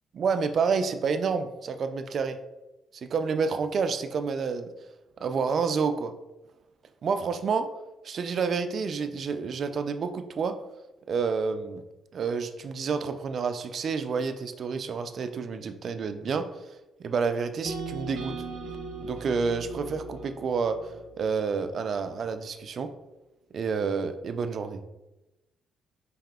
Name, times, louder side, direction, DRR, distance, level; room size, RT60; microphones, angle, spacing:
voice 1, 0.1-2.4 2.9-4.7 5.2-6.1 7.0-7.7 8.0-10.6 11.1-11.8 12.1-16.5 17.0-18.4 19.0-22.9 23.5-24.8, right 5 dB, 45° right, 9 dB, 0.3 m, -29 dB
sound 1, 17.6-21.8, right 3 dB, 85° right, 0.7 m, -39 dB
4.8 x 3.4 x 2.2 m, 1.0 s
cardioid pair, 130°, 0 cm